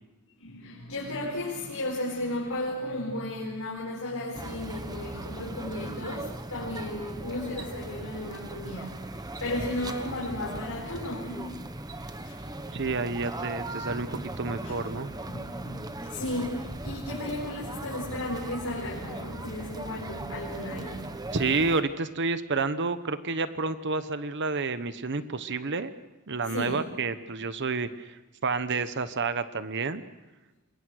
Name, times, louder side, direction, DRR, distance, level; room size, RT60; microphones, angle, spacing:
voice 1, 0.4-11.5 12.2-12.8 14.6-21.1 26.4-26.8, left 1 dB, 70° left, -4 dB, 5.0 m, -35 dB
sound 1, 4.3-21.8, right 1 dB, 15° right, 1.1 m, -38 dB
voice 2, 12.7-15.1 21.3-25.9 26.3-28.2 28.4-30.0, right 4 dB, 55° right, 12 dB, 1.0 m, -29 dB
27.5 x 22.0 x 6.5 m, 1.1 s
head